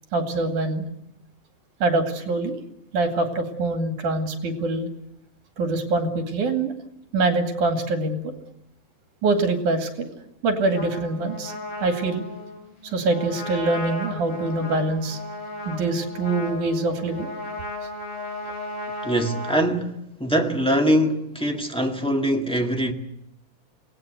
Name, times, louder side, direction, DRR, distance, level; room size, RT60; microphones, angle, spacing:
voice 1, 0.1-0.8 1.8-2.6 2.9-4.9 5.6-6.7 7.1-8.3 9.2-10.1 10.4-11.5 11.8-12.2 12.8-15.2 15.7-17.3, right 2 dB, 75° right, 3.8 m, -24 dB
Trumpet, 10.7-19.6, left 2 dB, 45° left, 6.7 m, -35 dB
voice 2, 19.0-22.9, equal, 5° left, 1.2 m, -23 dB
27.0 x 18.5 x 8.1 m
omnidirectional pair, 3.6 m